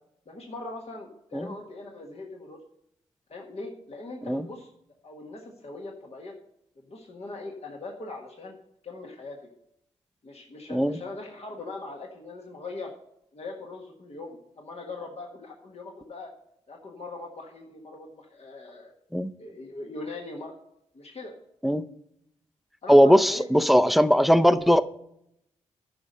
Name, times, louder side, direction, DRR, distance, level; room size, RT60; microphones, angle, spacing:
voice 1, 0.3-2.6 3.3-4.7 5.0-6.3 6.8-8.6 8.8-9.4 10.2-12.9 13.3-16.3 16.7-18.9 19.4-20.6 20.9-21.3 22.8-23.4, left 2 dB, 50° left, 0 dB, 1.6 m, -40 dB
voice 2, 22.9-24.8, equal, ahead, 12 dB, 0.6 m, -19 dB
10.0 x 5.4 x 6.3 m, 0.77 s
supercardioid pair, 45°, 13 cm